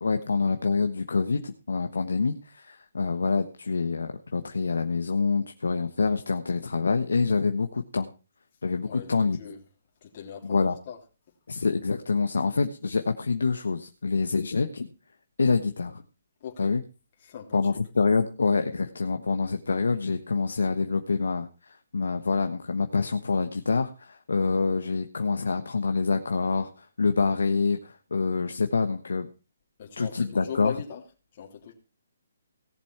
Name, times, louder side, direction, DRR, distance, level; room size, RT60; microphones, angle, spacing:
voice 1, 0.0-8.1 8.6-9.4 10.4-10.7 11.5-14.9 15.4-16.0 16.6-16.8 17.5-29.3 30.0-30.7, left 4 dB, 80° left, 1.2 m, -26 dB
voice 2, 8.8-9.6 10.0-11.0 16.4-16.8 17.2-17.8 29.8-31.0 31.3-31.7, left 7 dB, 45° left, 3.3 m, -39 dB
17.5 x 7.2 x 4.5 m
hypercardioid pair, 145°, 0 cm